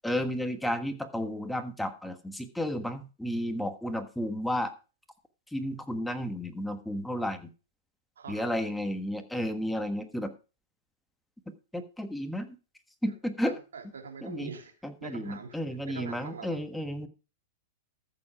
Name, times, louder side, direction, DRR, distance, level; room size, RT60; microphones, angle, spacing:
voice 1, 0.0-4.7 5.5-7.5 8.3-10.3 11.7-12.5 13.0-13.5 14.2-14.5 14.8-17.1, equal, 5° left, 1.4 m, -32 dB
voice 2, 8.2-8.5 13.1-13.2 13.4-14.7 15.0-16.6, right 5 dB, 90° right, 3.0 m, -43 dB
14.0 x 7.4 x 4.9 m
hypercardioid pair, 135°, 0 cm